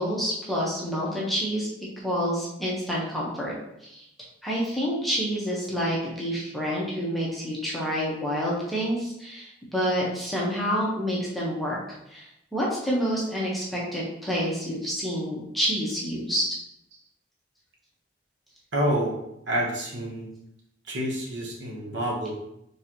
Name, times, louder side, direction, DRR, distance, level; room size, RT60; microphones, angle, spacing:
voice 1, 0.0-1.7 2.0-3.5 3.9-4.0 4.4-11.8 12.1-12.3 12.5-16.4, equal, ahead, -6 dB, 0.9 m, -28 dB
voice 2, 18.7-19.2 19.5-20.3 20.8-22.3, right 1 dB, 60° right, -2 dB, 1.0 m, -28 dB
4.3 x 3.3 x 2.8 m, 0.79 s
head